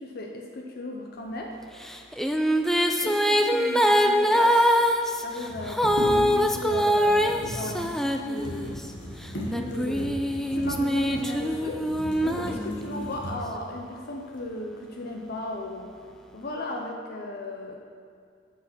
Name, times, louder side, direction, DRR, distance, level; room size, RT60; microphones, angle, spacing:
voice 1, 0.0-1.5 3.0-4.8 5.2-8.8 9.5-11.8 12.2-16.0 16.3-17.8, left 2 dB, 55° left, 1 dB, 0.7 m, -36 dB
sound 1, 1.9-8.9 9.5-13.2, equal, ahead, 0.3 m, -24 dB
sound 2, 3.8-3.9 4.1-4.2 5.3-13.7 14.3-14.5 14.9-15.5 15.9-16.4, equal, 75° left, 1.6 m, -37 dB
7.6 x 5.3 x 6.0 m, 2.3 s
head